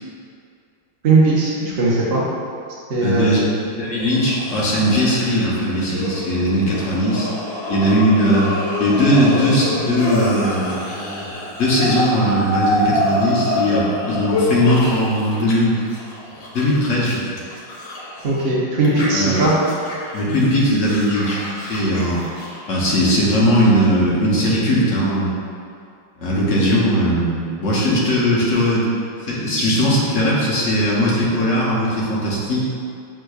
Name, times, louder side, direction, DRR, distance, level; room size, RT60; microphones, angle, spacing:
voice 1, 1.0-2.2 2.9-3.3 18.2-19.5, right 3 dB, 65° right, -6 dB, 0.6 m, -18 dB
voice 2, 3.0-7.3 7.7-8.5 8.8-10.8 11.6-15.9 16.5-17.2 18.9-19.4 20.1-22.2 22.7-25.3 26.2-28.9 29.3-32.6, equal, 50° left, -6 dB, 1.0 m, -19 dB
sound 1, 4.0-15.5 15.8-18.4 18.8-23.3, left 1 dB, 75° left, 1.5 m, -27 dB
6.4 x 3.6 x 2.3 m, 2.4 s
omnidirectional pair, 2.1 m